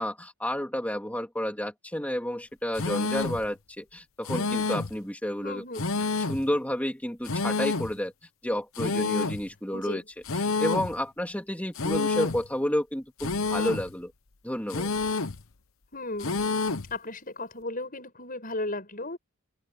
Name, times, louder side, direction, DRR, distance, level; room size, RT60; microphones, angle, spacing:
voice 1, 0.0-5.6 6.2-8.1 8.4-10.0 10.4-14.1 14.4-14.9, equal, 5° left, 2.9 m, -31 dB
sound 1, 2.8-3.5 4.3-5.0 5.8-6.5 7.3-8.0 8.8-9.5 10.3-11.0 11.8-12.5 13.2-13.9 14.7-15.4 16.2-16.9, left 3 dB, 65° left, 1.0 m, -28 dB
voice 2, 5.4-5.9 9.7-10.0 15.9-16.4 16.9-19.2, left 2 dB, 40° left, 7.9 m, -35 dB
open air
head